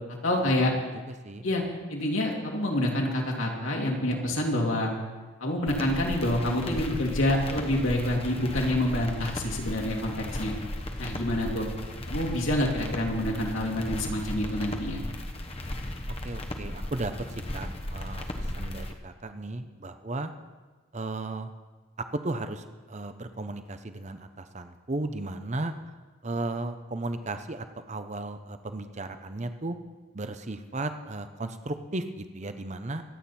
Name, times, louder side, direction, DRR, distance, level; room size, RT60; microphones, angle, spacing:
voice 1, 0.2-0.7 1.4-1.6 1.9-4.9 5.4-10.5 11.0-11.7 12.1-15.0, left 1 dB, 70° left, -1 dB, 2.7 m, -27 dB
voice 2, 1.1-1.4 16.2-17.1 17.5-20.3 20.9-21.5 22.0-25.7 26.2-29.8 30.1-33.0, right 2 dB, 35° right, 9 dB, 0.8 m, -35 dB
sound 1, 5.7-18.9, left 1 dB, 30° left, 1.1 m, -36 dB
24.5 x 8.8 x 4.3 m, 1.3 s
head